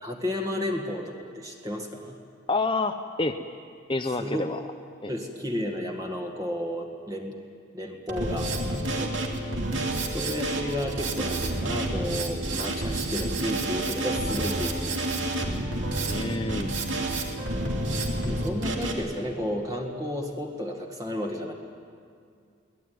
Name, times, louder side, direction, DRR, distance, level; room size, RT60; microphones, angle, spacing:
voice 1, 0.0-2.2 4.2-4.4 5.1-7.4 7.7-9.2 10.1-15.5 18.3-21.5, left 1 dB, 20° right, 0 dB, 1.9 m, -32 dB
voice 2, 2.5-3.4 3.9-4.6 5.0-5.1 9.7-9.8 16.0-16.7, left 3 dB, 25° left, 7 dB, 0.7 m, -28 dB
Drum kit, 8.1-18.9, right 2 dB, 65° right, 2.8 m, -29 dB
23.0 x 18.5 x 9.4 m, 2.3 s
head